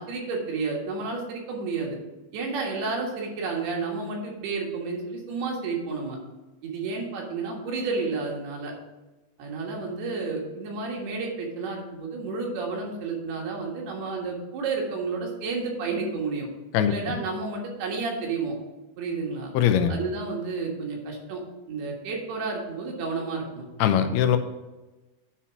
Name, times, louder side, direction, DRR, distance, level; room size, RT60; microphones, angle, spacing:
voice 1, 0.0-2.0 2.3-6.2 6.6-8.7 9.4-16.5 16.9-18.6 19.0-19.5 19.9-23.7, right 4 dB, 80° right, -1 dB, 3.6 m, -31 dB
voice 2, 16.7-17.2 19.5-20.0 23.8-24.4, left 9 dB, 85° left, 8 dB, 2.6 m, -21 dB
9.7 x 4.3 x 5.9 m, 1.1 s
omnidirectional pair, 4.5 m